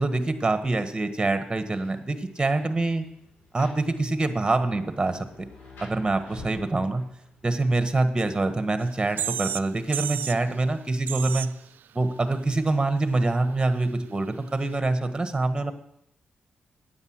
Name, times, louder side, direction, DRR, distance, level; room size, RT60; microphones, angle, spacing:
voice 1, 0.0-3.0 3.5-5.5 5.8-7.0 7.4-11.5 11.9-15.7, right 2 dB, 25° right, 9 dB, 1.4 m, -25 dB
Rain, 1.4-10.2, left 2 dB, 85° left, 4.7 m, -51 dB
sound 1, 8.8-8.9 9.2-9.7 9.9-10.4 11.1-11.5, right 10 dB, 75° right, 0.3 m, -31 dB
9.7 x 8.0 x 6.4 m, 0.74 s
supercardioid pair, 50°, 3 cm